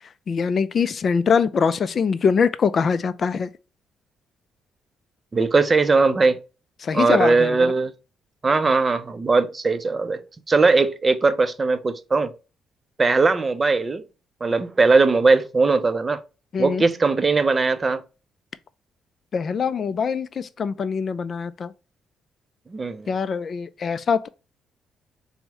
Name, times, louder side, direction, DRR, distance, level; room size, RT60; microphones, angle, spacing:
voice 1, 0.3-3.5 6.8-7.7 16.5-16.8 19.3-21.7 23.1-24.3, left 6 dB, 50° left, 0.3 m, -23 dB
voice 2, 5.3-6.4 6.9-7.9 8.4-10.2 10.5-12.3 13.0-14.0 14.4-16.2 16.6-18.0 22.7-23.1, right 3 dB, 30° right, 0.5 m, -19 dB
4.6 x 2.1 x 2.9 m
cardioid pair, 90°, 0 cm